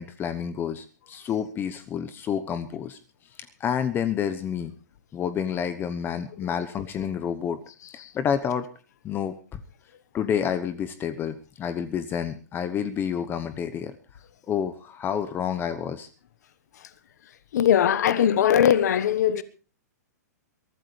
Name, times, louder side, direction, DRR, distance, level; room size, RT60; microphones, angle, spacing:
voice 1, 0.0-3.0 3.6-4.7 5.1-7.6 7.9-8.7 9.0-9.6 10.1-14.0 14.5-16.1, left 8 dB, 25° left, 1.0 m, -29 dB
voice 2, 17.5-19.4, left 9 dB, 70° left, 1.2 m, -21 dB
22.5 x 14.0 x 3.3 m
hypercardioid pair, 135°, 9 cm